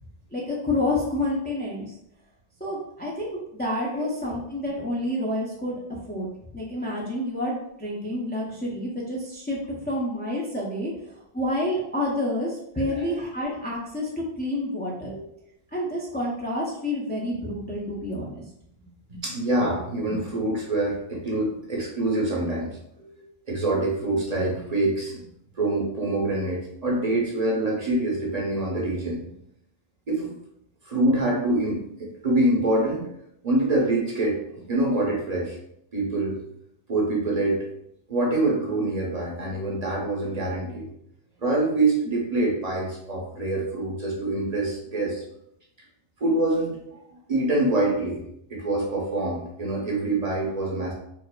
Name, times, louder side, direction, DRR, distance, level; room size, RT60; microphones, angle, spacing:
voice 1, 0.3-1.9 2.6-5.8 6.1-6.3 6.5-10.9 11.3-15.1 15.7-18.4, left 1 dB, 15° left, -4 dB, 0.3 m, -29 dB
voice 2, 12.8-13.1 19.2-23.0 23.5-25.2 25.5-29.3 30.1-30.3 30.8-33.0 33.4-35.6 35.9-36.4 36.9-37.7 38.1-40.9 41.4-45.2 46.2-47.0 47.3-48.2 48.5-50.9, right 2 dB, 40° right, -3 dB, 0.7 m, -25 dB
4.5 x 2.4 x 2.2 m, 0.76 s
omnidirectional pair, 1.2 m